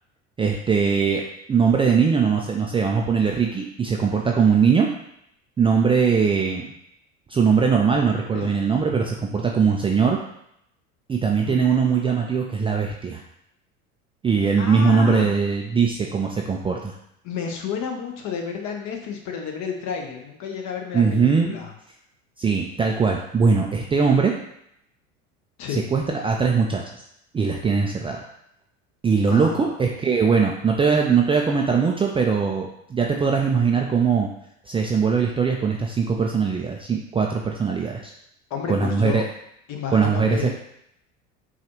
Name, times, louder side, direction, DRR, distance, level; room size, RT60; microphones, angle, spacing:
voice 1, 0.4-1.2 1.5-4.9 5.6-6.6 7.3-10.2 11.1-13.2 14.2-16.9 20.9-21.6 22.4-24.3 25.7-26.8 27.3-28.2 29.0-34.3 34.7-38.0 38.7-39.2 39.9-40.5, right 5 dB, 15° right, 0 dB, 0.4 m, -21 dB
voice 2, 14.6-15.3 17.2-21.7 25.6-25.9 29.3-29.7 38.5-39.3 39.7-40.5, left 6 dB, 45° left, 3 dB, 0.9 m, -31 dB
5.9 x 2.4 x 3.0 m, 0.75 s
hypercardioid pair, 75°, 39 cm